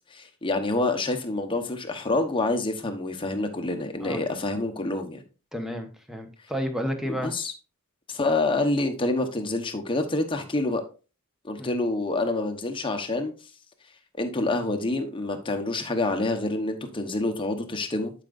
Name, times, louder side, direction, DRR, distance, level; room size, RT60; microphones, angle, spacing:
voice 1, 0.1-5.2 7.0-7.5 8.1-10.8 11.4-13.3 14.2-18.1, left 2 dB, 25° left, 1.0 m, -27 dB
voice 2, 5.5-7.3 11.6-11.7, equal, ahead, 1.0 m, -31 dB
11.5 x 5.0 x 2.5 m
head